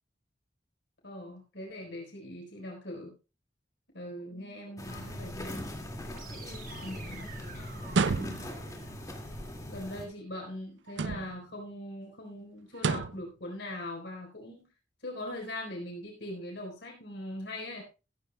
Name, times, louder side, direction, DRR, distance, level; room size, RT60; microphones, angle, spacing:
voice 1, 1.0-3.1 3.9-5.6 6.8-7.3 9.7-14.7 15.0-17.8, left 1 dB, 80° left, 0 dB, 4.1 m, -41 dB
voice 2, 4.2-5.6 6.3-8.4, left 1 dB, 50° left, 1 dB, 4.7 m, -53 dB
sound 1, 4.8-10.1, left 1 dB, 20° left, 2.1 m, -41 dB
sound 2, 6.1-10.1, right 5 dB, 50° right, 1.5 m, -50 dB
sound 3, 7.9-8.7 10.9-11.5 12.7-13.3, right 4 dB, 85° right, 0.5 m, -30 dB
14.5 x 14.5 x 2.2 m, 0.31 s
head